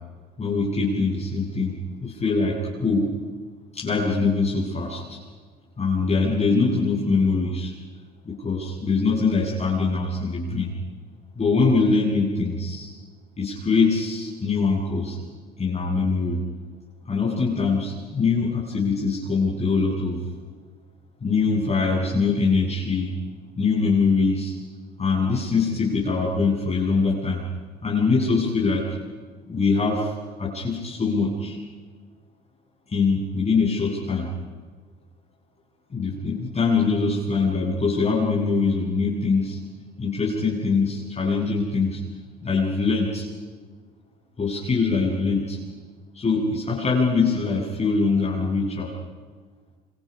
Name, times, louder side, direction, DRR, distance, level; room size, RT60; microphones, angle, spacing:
voice 1, 0.4-3.1 3.7-5.2 5.8-7.7 8.2-10.7 11.4-12.9 13.4-15.2 15.6-16.4 17.1-20.2 21.2-23.1 23.6-24.5 25.0-27.4 27.8-28.9 29.5-30.1 30.4-31.6 32.9-34.3 35.9-39.6 40.0-42.0 42.4-43.3 44.4-45.6 46.1-48.9, left 4 dB, 30° left, -5 dB, 7.6 m, -23 dB
27.5 x 26.5 x 5.6 m, 1.5 s
hypercardioid pair, 70°, 21 cm